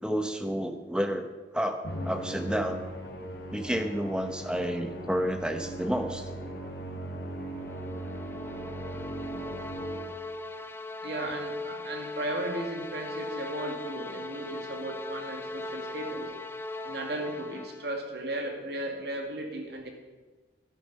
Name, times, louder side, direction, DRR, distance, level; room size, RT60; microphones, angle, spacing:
voice 1, 0.0-2.8 3.5-6.3, equal, 5° right, 6 dB, 0.8 m, -30 dB
Musical instrument, 1.8-10.4, right 1 dB, 55° left, 1.7 m, -38 dB
sound 1, 7.5-18.0, left 2 dB, 10° left, 0.4 m, -39 dB
voice 2, 11.0-16.3 16.8-19.9, right 1 dB, 55° right, 2 dB, 2.1 m, -36 dB
12.5 x 10.0 x 5.4 m, 1.3 s
head